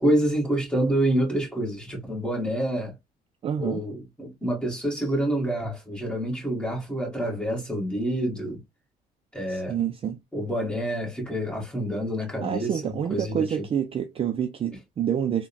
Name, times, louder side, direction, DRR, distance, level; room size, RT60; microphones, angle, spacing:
voice 1, 0.0-2.9 3.6-8.6 9.3-9.9 10.3-13.6, right 1 dB, 5° left, 1.7 m, -27 dB
voice 2, 3.4-3.8 9.5-10.2 12.4-15.5, right 9 dB, 35° right, 0.4 m, -28 dB
3.6 x 2.2 x 2.2 m
cardioid pair, 110°, 17 cm